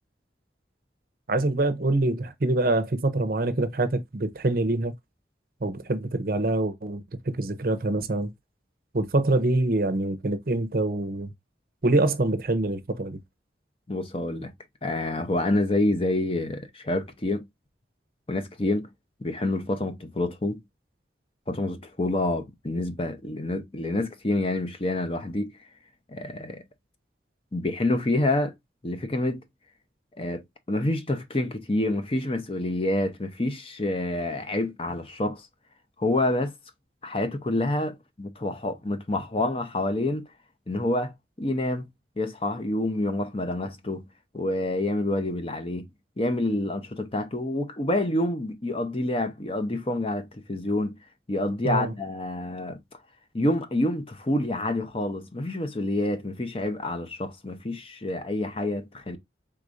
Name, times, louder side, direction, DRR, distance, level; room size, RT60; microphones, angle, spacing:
voice 1, 1.3-4.9 5.6-8.3 8.9-11.3 11.8-13.2 51.6-51.9, right 2 dB, 50° right, 0.7 m, -25 dB
voice 2, 13.9-14.5 14.8-17.4 18.3-18.9 19.2-20.6 21.5-25.5 26.1-26.6 27.5-28.5 28.8-29.4 30.2-30.4 30.7-35.5 36.0-36.5 37.0-40.3 40.7-41.9 42.2-44.1 44.3-45.9 46.2-51.0 51.3-52.8 53.3-59.2, left 1 dB, 30° left, 0.8 m, -27 dB
4.9 x 3.6 x 2.5 m
head